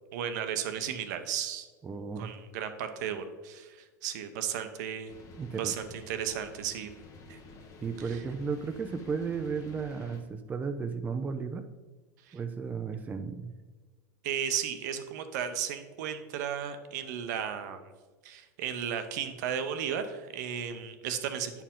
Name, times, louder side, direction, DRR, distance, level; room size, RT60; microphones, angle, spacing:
voice 1, 0.1-1.7 2.2-5.1 5.6-6.9 7.3-7.4 12.3-12.4 14.2-17.8 18.2-21.6, right 8 dB, 65° right, 8 dB, 0.8 m, -34 dB
voice 2, 1.8-2.3 5.4-5.7 7.8-11.7 12.3-13.5, right 5 dB, 15° right, 8 dB, 0.4 m, -34 dB
sound 1, 5.1-10.2, left 3 dB, 35° left, 1.0 m, -51 dB
8.9 x 4.6 x 3.7 m, 1.3 s
hypercardioid pair, 115°, 10 cm